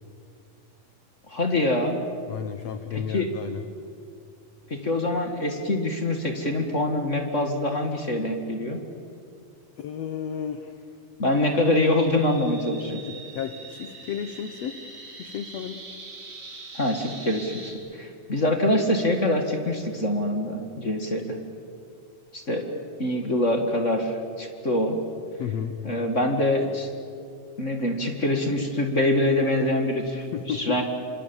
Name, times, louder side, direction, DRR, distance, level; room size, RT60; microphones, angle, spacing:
voice 1, 1.3-2.0 2.9-3.3 4.7-8.8 11.2-13.0 16.7-21.4 22.3-22.6 23.0-25.0 25.8-26.9 27.6-30.3 30.5-30.8, left 1 dB, 30° left, 4 dB, 1.7 m, -25 dB
voice 2, 2.3-3.6 9.8-10.8 13.0-14.7 15.2-15.8 25.4-25.7 30.3-30.8, left 8 dB, 65° left, 8 dB, 1.9 m, -33 dB
sound 1, 11.3-17.7, right 3 dB, 40° right, 4.4 m, -43 dB
26.5 x 26.0 x 7.2 m, 2.4 s
omnidirectional pair, 3.9 m